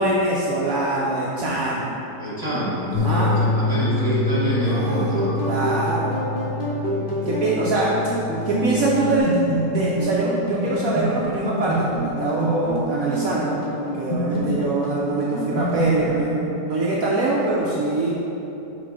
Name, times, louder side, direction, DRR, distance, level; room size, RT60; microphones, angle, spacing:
voice 1, 0.0-2.0 2.9-3.3 4.6-5.1 5.4-6.2 7.3-7.9 8.4-18.2, right 2 dB, 65° right, -5 dB, 1.0 m, -24 dB
voice 2, 2.1-5.3, equal, 15° left, -9 dB, 1.4 m, -26 dB
Bass guitar, 2.9-9.2, left 2 dB, 65° left, 0.7 m, -26 dB
sound 1, 4.7-16.1, equal, 35° left, 1.0 m, -26 dB
7.2 x 3.4 x 4.8 m, 3.0 s
omnidirectional pair, 1.9 m